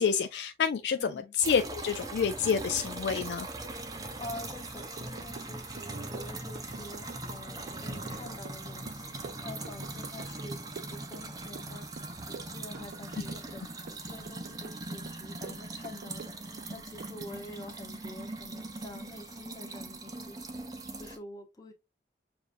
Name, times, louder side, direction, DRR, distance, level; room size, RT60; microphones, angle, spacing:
voice 1, 0.0-3.5, left 6 dB, 75° left, 0.4 m, -28 dB
voice 2, 1.0-1.3 3.8-10.6 10.9-21.7, left 2 dB, 20° left, 1.0 m, -47 dB
sound 1, 1.4-21.2, right 2 dB, 20° right, 0.7 m, -41 dB
sound 2, 2.3-3.1 3.6-6.8 7.3-8.7 9.0-10.9 11.5-13.6, right 2 dB, 40° right, 0.9 m, -50 dB
sound 3, 5.0-5.5 5.8-7.4 7.7-10.5 10.8-11.7 12.0-13.6 13.9-14.8 15.1-16.7 17.0-17.2, right 4 dB, 60° right, 0.4 m, -47 dB
6.9 x 2.5 x 2.5 m
head